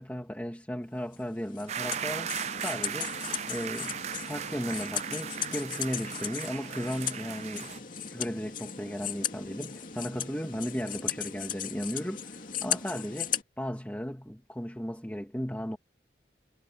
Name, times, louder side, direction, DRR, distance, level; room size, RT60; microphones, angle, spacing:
voice 1, 0.0-2.4 2.6-3.1 3.5-4.0 4.3-15.8, equal, 10° left, 2.0 m, -36 dB
sound 1, 1.1-13.4, left 9 dB, 50° left, 2.6 m, -37 dB
sound 2, 1.7-7.8, right 9 dB, 40° right, 0.4 m, -37 dB
head